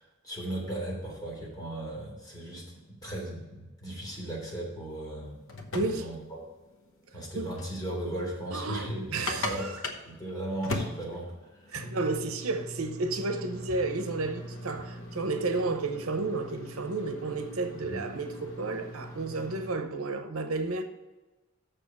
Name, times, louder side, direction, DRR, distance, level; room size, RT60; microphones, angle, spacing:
voice 1, 0.0-2.6 2.9-5.3 5.8-6.4 7.1-9.7 10.0-11.8 17.9-18.0, right 1 dB, 20° left, 3.3 m, -37 dB
sound 1, 5.3-19.7, left 1 dB, 65° left, 1.1 m, -40 dB
voice 2, 5.7-6.1 7.4-7.5 8.5-9.7 11.7-20.8, right 3 dB, 80° right, 0.8 m, -32 dB
6.9 x 6.7 x 5.8 m
head